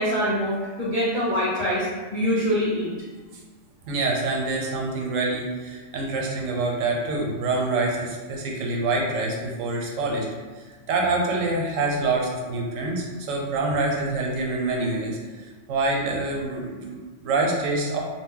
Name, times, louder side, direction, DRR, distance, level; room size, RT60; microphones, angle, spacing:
voice 1, 0.0-2.9, equal, 65° left, -9 dB, 0.3 m, -24 dB
voice 2, 3.9-10.3 10.6-18.0, right 2 dB, 90° right, -1 dB, 1.0 m, -26 dB
2.2 x 2.0 x 3.6 m, 1.4 s
omnidirectional pair, 1.3 m